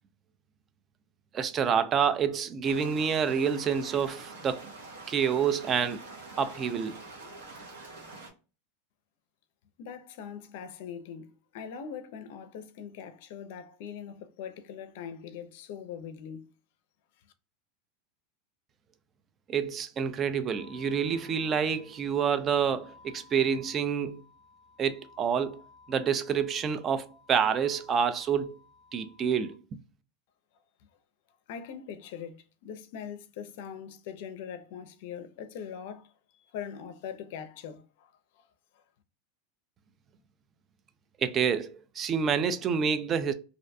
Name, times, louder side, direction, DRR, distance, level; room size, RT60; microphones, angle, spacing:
voice 1, 1.3-4.7 5.1-6.0 6.4-7.0 19.5-24.2 24.8-25.6 25.9-28.6 28.9-29.8 41.2-43.3, right 7 dB, 30° right, 0.3 m, -28 dB
sound 1, 2.6-8.3, right 3 dB, 90° right, 0.9 m, -46 dB
voice 2, 9.8-16.5 31.5-36.1 36.5-38.5 38.7-38.8, left 7 dB, 65° left, 0.4 m, -42 dB
sound 2, 20.5-29.5, left 4 dB, 10° left, 0.7 m, -57 dB
2.5 x 2.2 x 2.5 m
hypercardioid pair, 115°, 0 cm